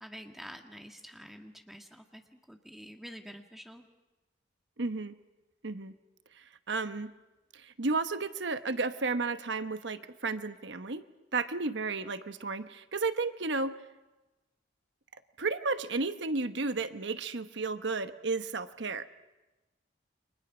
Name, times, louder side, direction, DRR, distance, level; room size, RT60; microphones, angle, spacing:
voice 1, 0.0-3.9, equal, ahead, 4 dB, 1.8 m, -48 dB
voice 2, 4.8-5.2 5.6-5.9 6.3-7.1 7.5-11.1 11.3-13.7 15.4-19.1, right 3 dB, 75° right, 10 dB, 1.1 m, -33 dB
30.0 x 24.0 x 6.2 m, 1.1 s
head